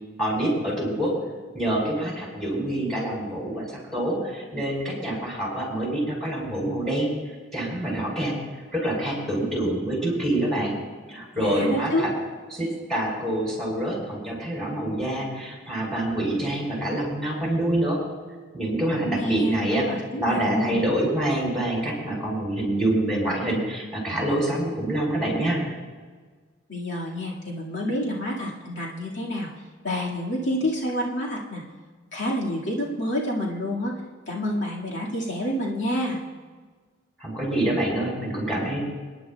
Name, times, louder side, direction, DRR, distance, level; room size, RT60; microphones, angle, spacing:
voice 1, 0.2-1.2 1.5-7.1 7.5-8.4 8.7-10.7 11.1-12.1 12.5-18.0 18.5-19.9 20.2-25.6 37.2-38.8, right 1 dB, ahead, -4 dB, 4.9 m, -26 dB
voice 2, 11.4-12.1 18.9-20.8 26.7-29.5 29.8-31.6 32.1-33.9 34.3-36.2, equal, 75° left, -5 dB, 2.2 m, -28 dB
28.5 x 10.5 x 2.4 m, 1.4 s
head